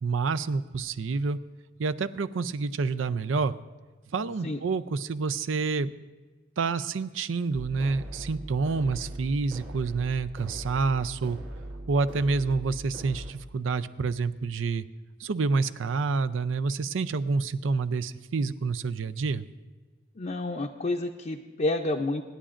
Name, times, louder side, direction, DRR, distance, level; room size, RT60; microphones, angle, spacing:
voice 1, 0.0-1.4 1.8-3.5 4.1-5.9 6.6-11.4 11.9-14.9 15.2-19.4, right 4 dB, 90° right, 12 dB, 0.5 m, -28 dB
sound 1, 7.5-13.3, right 1 dB, 65° right, 1.9 m, -40 dB
voice 2, 20.2-22.2, left 2 dB, 40° left, 1 dB, 0.5 m, -29 dB
25.5 x 10.0 x 2.5 m, 1.3 s
head